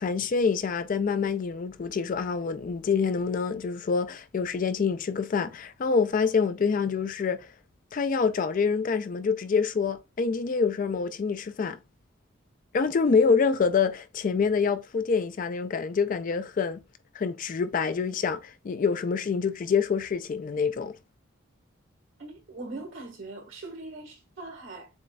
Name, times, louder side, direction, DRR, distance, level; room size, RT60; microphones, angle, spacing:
voice 1, 0.0-7.5 7.9-11.8 12.7-16.8 17.1-21.0, left 5 dB, 40° left, 0.3 m, -26 dB
voice 2, 22.2-24.9, right 2 dB, 70° right, 1.4 m, -41 dB
7.0 x 2.5 x 2.2 m
head